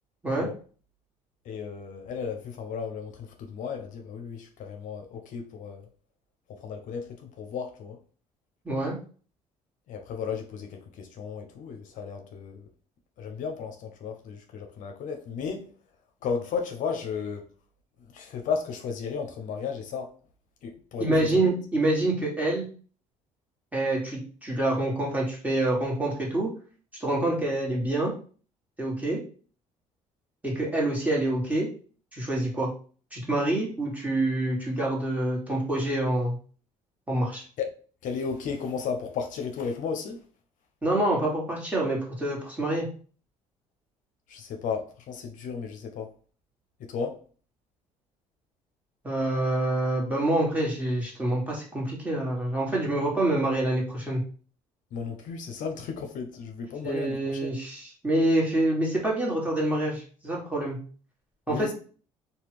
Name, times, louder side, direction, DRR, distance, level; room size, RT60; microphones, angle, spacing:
voice 1, 1.4-5.9 6.5-8.0 9.9-12.7 13.2-15.7 16.2-17.5 18.1-20.1 20.6-21.5 37.6-37.7 38.0-40.2 44.3-46.1 46.8-47.2 54.9-57.5 61.5-61.7, left 6 dB, 65° left, 0.5 m, -34 dB
voice 2, 21.0-22.7 23.7-26.5 27.0-28.1 28.8-29.2 30.4-31.7 32.1-32.7 33.1-36.4 37.1-37.4 40.8-42.9 49.0-54.2 56.8-60.8 61.5-61.7, right 1 dB, 10° right, 1.5 m, -26 dB
2.8 x 2.2 x 3.3 m
supercardioid pair, 75°, 15 cm